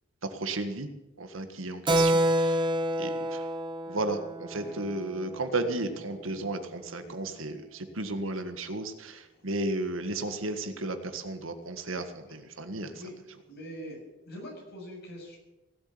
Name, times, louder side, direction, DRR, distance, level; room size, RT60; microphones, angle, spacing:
voice 1, 0.2-0.9 1.2-2.7 3.0-3.5 3.9-12.9, right 2 dB, 85° right, 8 dB, 1.7 m, -34 dB
Keyboard (musical), 1.9-6.0, right 1 dB, 25° right, 1.1 m, -28 dB
voice 2, 13.5-14.0 14.2-15.4, equal, 55° left, -1 dB, 7.4 m, -43 dB
17.5 x 8.3 x 9.7 m, 1.0 s
head